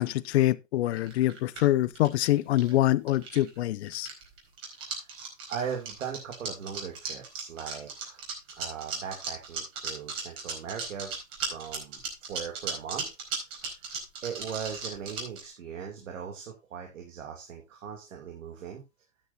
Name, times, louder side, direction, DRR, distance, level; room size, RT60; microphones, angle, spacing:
voice 1, 0.0-4.1, left 15 dB, 55° left, 0.7 m, -25 dB
sound 1, 0.9-2.8 3.1-3.6 3.9-15.4, right 5 dB, 30° right, 4.5 m, -36 dB
voice 2, 5.5-8.2 8.5-11.1 11.5-13.1 14.2-18.8, right 7 dB, 70° right, 2.7 m, -39 dB
12.5 x 9.8 x 2.7 m
hypercardioid pair, 125°, 40 cm